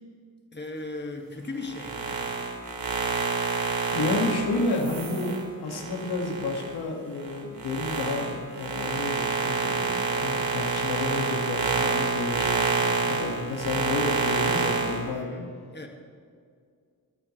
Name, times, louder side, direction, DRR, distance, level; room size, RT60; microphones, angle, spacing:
voice 1, 0.5-2.2 13.1-13.3 15.1-15.9, left 2 dB, 30° left, 2 dB, 2.0 m, -38 dB
sound 1, 1.6-6.7 7.2-15.0, right 4 dB, 65° right, 2.8 m, -28 dB
voice 2, 3.9-15.3, left 3 dB, 80° left, 1 dB, 2.2 m, -30 dB
26.0 x 8.8 x 3.3 m, 2.1 s
supercardioid pair, 45°, 38 cm